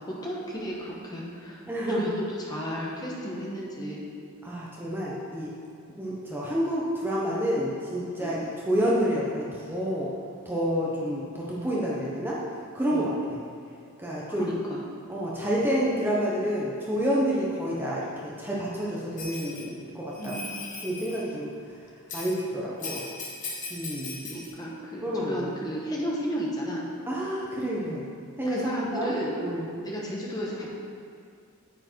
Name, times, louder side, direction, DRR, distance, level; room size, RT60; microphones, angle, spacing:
voice 1, 0.1-1.6 1.9-4.1 8.2-8.4 12.9-13.1 14.3-14.8 20.2-20.5 24.2-26.8 28.5-29.4 29.8-30.7, equal, 20° left, -4 dB, 1.4 m, -33 dB
voice 2, 1.7-2.1 4.4-5.5 6.0-8.4 8.7-10.1 10.4-12.4 12.7-13.1 14.0-14.5 15.1-20.3 20.8-21.5 22.1-23.0 23.7-24.2 25.0-25.4 27.1-28.0 28.4-29.1 29.4-29.7, equal, 10° right, -6 dB, 1.1 m, -28 dB
Bell, 19.2-19.6 20.1-21.2 22.1-22.4 22.8-24.5, left 3 dB, 35° left, 1.8 m, -38 dB
9.2 x 8.8 x 4.6 m, 2.3 s
head